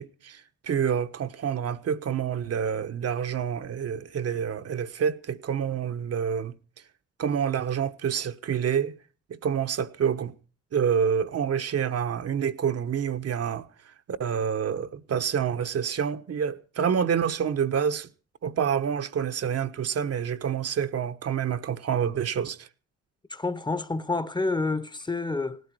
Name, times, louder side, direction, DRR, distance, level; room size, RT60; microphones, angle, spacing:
voice 1, 0.0-6.5 7.2-9.0 9.3-10.3 10.7-13.6 14.1-18.1 18.4-22.7, right 7 dB, 55° right, 1.2 m, -27 dB
voice 2, 23.3-25.6, left 3 dB, 15° left, 1.1 m, -28 dB
18.0 x 12.5 x 4.7 m
cardioid pair, 90°, 30 cm